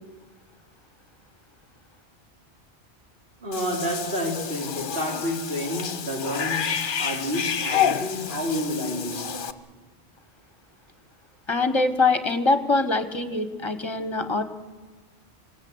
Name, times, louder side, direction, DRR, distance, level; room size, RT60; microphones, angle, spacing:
voice 1, 3.4-9.5, equal, 60° right, 4.4 m, -30 dB
Cat / Bathtub (filling or washing), 3.5-9.5, left 8 dB, 55° left, 1.0 m, -29 dB
voice 2, 11.5-14.4, left 3 dB, 25° left, 1.4 m, -23 dB
26.0 x 16.5 x 8.8 m
omnidirectional pair, 1.1 m